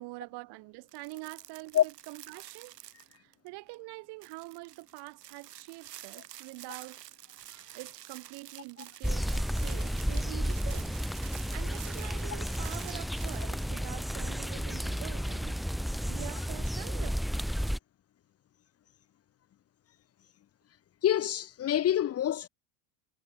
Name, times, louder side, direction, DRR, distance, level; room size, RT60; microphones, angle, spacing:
voice 1, 0.0-2.8 3.1-7.0 7.7-11.0 11.5-15.6 16.1-17.2, right 24 dB, 55° right, 3.3 m, -45 dB
sound 1, 0.9-3.5 3.7-3.8 4.2-13.7, right 13 dB, 85° right, 5.2 m, -49 dB
sound 2, 9.0-17.8, equal, ahead, 0.4 m, -32 dB
voice 2, 21.0-22.5, left 11 dB, 30° left, 1.2 m, -26 dB
hypercardioid pair, 100°, 47 cm